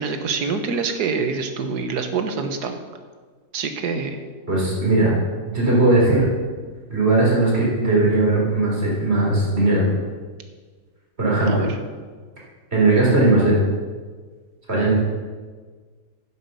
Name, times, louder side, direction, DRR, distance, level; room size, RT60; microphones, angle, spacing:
voice 1, 0.0-2.8 3.5-4.2 11.5-11.7, right 5 dB, 65° right, 7 dB, 1.6 m, -25 dB
voice 2, 4.5-5.1 5.5-6.3 6.9-9.8 11.2-11.7 12.7-13.6 14.7-14.9, right 2 dB, 35° right, -5 dB, 4.1 m, -18 dB
10.0 x 7.6 x 6.9 m, 1.5 s
omnidirectional pair, 1.9 m